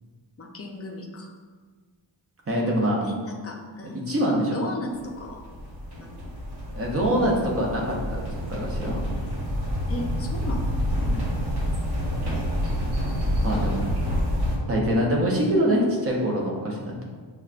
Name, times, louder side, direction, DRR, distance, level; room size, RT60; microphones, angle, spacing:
voice 1, 0.4-1.3 3.0-4.0 4.5-5.4 6.0-6.2 9.9-10.7, left 1 dB, 35° left, 1 dB, 0.5 m, -35 dB
voice 2, 2.5-3.0 3.8-4.7 6.7-9.0 11.0-11.2 12.2-12.3 13.4-13.8 14.7-17.0, equal, 30° right, -2 dB, 0.7 m, -24 dB
sound 1, 5.0-14.6, equal, 60° right, 1.0 m, -28 dB
6.2 x 2.2 x 2.4 m, 1.5 s
wide cardioid pair, 170°, 45 cm